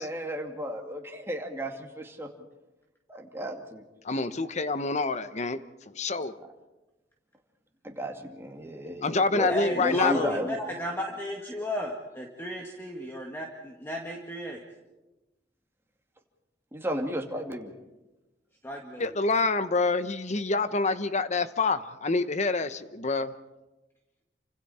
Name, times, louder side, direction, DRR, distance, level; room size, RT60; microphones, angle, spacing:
voice 1, 0.0-2.3 3.1-3.8 7.8-10.6 16.7-17.7, equal, 15° right, 2 dB, 2.4 m, -34 dB
voice 2, 4.0-5.6 6.0-6.3 9.0-10.3 19.0-23.3, left 3 dB, 40° left, 12 dB, 1.0 m, -27 dB
voice 3, 9.5-10.4 10.8-14.6 18.6-19.1, equal, 15° left, 0 dB, 2.0 m, -34 dB
29.0 x 25.5 x 4.4 m, 1.1 s
head